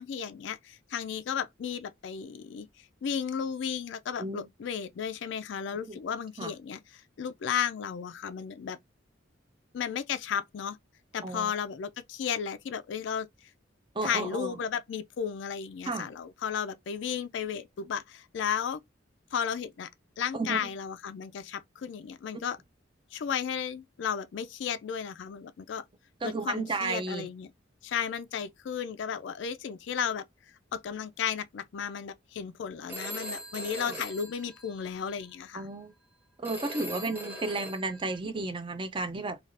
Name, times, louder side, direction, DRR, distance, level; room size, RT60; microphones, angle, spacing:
voice 1, 0.0-2.7 3.0-8.8 9.7-10.8 11.1-13.3 14.0-18.8 19.3-19.9 20.2-22.6 23.1-25.8 26.2-27.5 27.8-30.2 30.7-35.7, left 7 dB, 65° left, 0.3 m, -34 dB
voice 2, 13.9-14.5 15.8-16.1 20.3-20.7 26.2-27.3 33.8-34.0 35.5-35.9 36.4-39.4, right 3 dB, 25° right, 0.5 m, -33 dB
Telephone, 32.9-35.2 36.4-38.2, right 1 dB, 10° right, 0.9 m, -41 dB
3.3 x 2.3 x 2.5 m
head